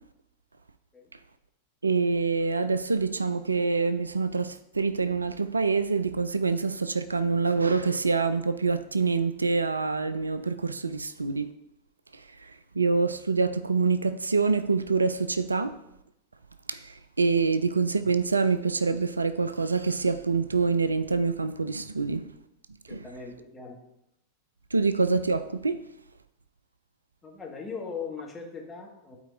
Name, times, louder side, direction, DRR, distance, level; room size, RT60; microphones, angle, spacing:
voice 1, 1.8-11.5 12.1-15.8 16.7-22.3 22.9-23.1 24.7-25.8, right 4 dB, 80° right, 0.3 m, -26 dB
voice 2, 22.9-23.8 27.2-29.2, left 5 dB, 15° left, 1.6 m, -39 dB
12.0 x 4.4 x 2.6 m
figure-of-eight pair, 90°, 0 cm